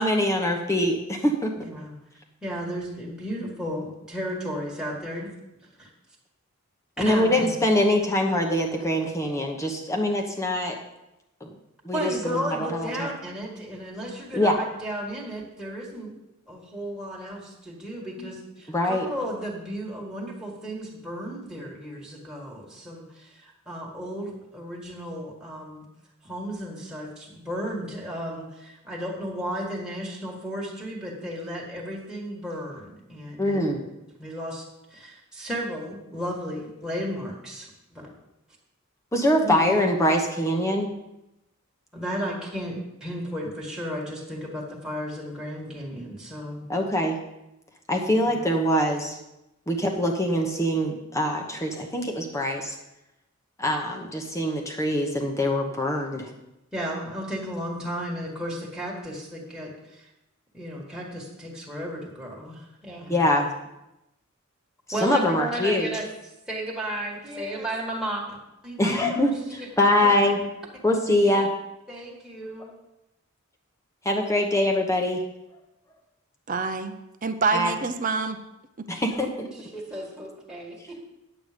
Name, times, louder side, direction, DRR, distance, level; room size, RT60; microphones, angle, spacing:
voice 1, 0.0-1.5 7.0-10.8 11.4-11.5 11.8-13.1 14.3-14.6 18.7-19.1 33.4-33.8 39.1-40.9 46.7-47.2 47.9-49.2 49.7-52.7 53.6-56.3 63.1-63.5 65.0-65.9 68.8-70.4 70.8-71.5 74.0-75.2 77.5-77.7 78.9-79.5, left 1 dB, 15° left, 1 dB, 1.0 m, -23 dB
voice 2, 1.6-1.9 2.4-5.3 5.8-5.9 7.1-7.5 11.9-16.1 16.5-25.9 26.2-33.7 34.2-38.1 39.4-39.8 41.9-46.7 48.2-48.4 56.7-60.1 60.5-63.3 64.9-66.1 66.5-68.4 68.6-70.3 71.2-71.4 71.9-72.8 79.5-81.0, equal, 5° right, -4 dB, 1.7 m, -34 dB
voice 3, 76.5-78.4 78.8-78.9, right 4 dB, 40° right, 9 dB, 0.7 m, -27 dB
9.7 x 8.0 x 5.1 m, 0.91 s
head